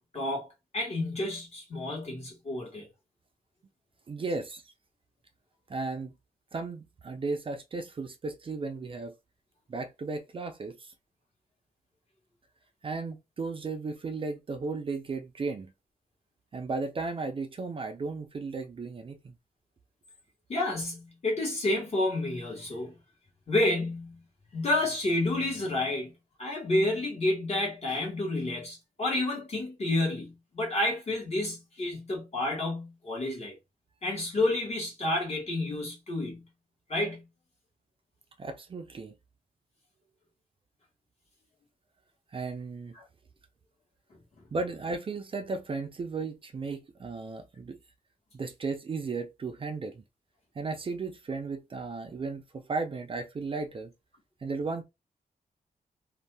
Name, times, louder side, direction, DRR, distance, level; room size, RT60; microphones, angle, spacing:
voice 1, 0.1-2.9 20.5-23.0 23.5-24.2 24.5-26.1 26.4-33.6 34.0-36.4 36.9-37.2, left 2 dB, 45° left, 1.2 m, -30 dB
voice 2, 4.1-4.6 5.7-6.1 6.5-9.1 9.7-10.9 12.8-15.7 16.5-19.4 38.4-39.1 42.3-42.9 44.5-47.8 48.3-50.0 50.6-53.9 54.4-54.8, right 4 dB, 35° right, 0.4 m, -35 dB
2.6 x 2.2 x 3.2 m
wide cardioid pair, 175°, 15 cm